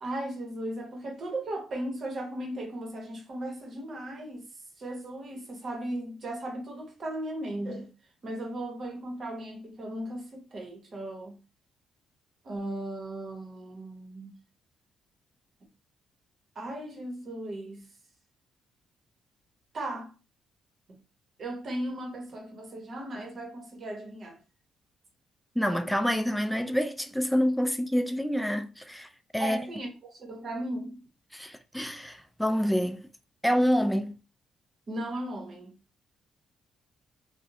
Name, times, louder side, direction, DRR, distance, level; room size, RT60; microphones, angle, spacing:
voice 1, 0.0-4.5 4.8-7.9 8.2-11.4 12.4-14.3 16.5-17.9 19.7-20.1 20.9-21.0 21.4-24.4 29.4-31.0 34.9-35.7, right 1 dB, 45° right, 0.9 m, -36 dB
voice 2, 25.6-29.6 31.3-33.1 33.4-34.1, equal, ahead, 0.4 m, -27 dB
2.6 x 2.0 x 2.6 m
cardioid pair, 90°, 0 cm